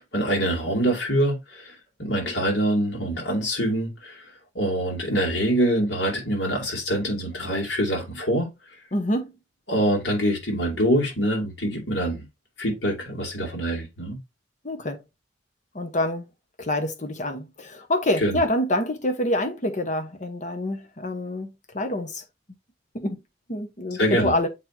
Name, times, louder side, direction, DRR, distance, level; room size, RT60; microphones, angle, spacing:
voice 1, 0.0-8.5 9.7-12.3 12.6-14.2 18.2-18.4 23.9-24.3, right 1 dB, 80° left, 2.6 m, -25 dB
voice 2, 8.9-9.3 14.6-15.0 15.7-16.2 16.6-21.5 21.7-22.2 22.9-23.2 23.5-24.5, left 1 dB, 45° left, 1.2 m, -26 dB
7.3 x 4.6 x 2.8 m
head